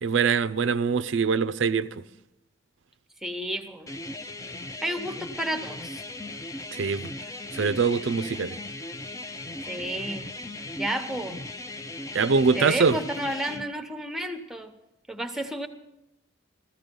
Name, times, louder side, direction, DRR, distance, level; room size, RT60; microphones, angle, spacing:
voice 1, 0.0-1.9 6.7-7.1 7.5-8.6 12.1-13.0, right 5 dB, 70° right, 0.5 m, -23 dB
voice 2, 3.2-3.9 4.8-6.0 9.7-10.3 10.8-11.4 12.5-14.7 15.1-15.7, right 1 dB, ahead, 0.9 m, -31 dB
sound 1, 3.9-13.6, left 2 dB, 15° left, 0.4 m, -38 dB
15.0 x 14.5 x 5.3 m
head